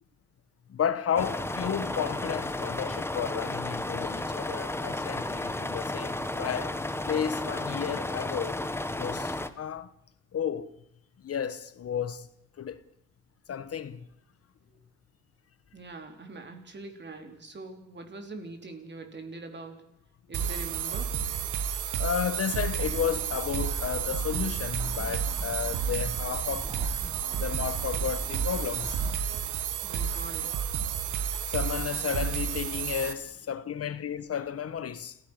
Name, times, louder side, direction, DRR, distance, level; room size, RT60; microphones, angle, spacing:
voice 1, 0.7-8.6 9.0-9.9 10.3-10.7 11.2-12.3 12.6-12.8 13.5-14.1 22.0-26.8 27.4-29.0 31.5-35.2, left 8 dB, 50° left, 1.2 m, -32 dB
sound 1, 1.2-9.5, left 1 dB, 10° left, 1.4 m, -33 dB
voice 2, 15.7-19.8 20.3-21.1 29.8-30.5, right 3 dB, 35° right, 4.2 m, -43 dB
sound 2, 20.3-33.1, right 8 dB, 85° right, 1.8 m, -31 dB
sound 3, 22.8-29.2, right 1 dB, 10° right, 1.8 m, -39 dB
28.5 x 15.5 x 6.5 m
cardioid pair, 90°, 30 cm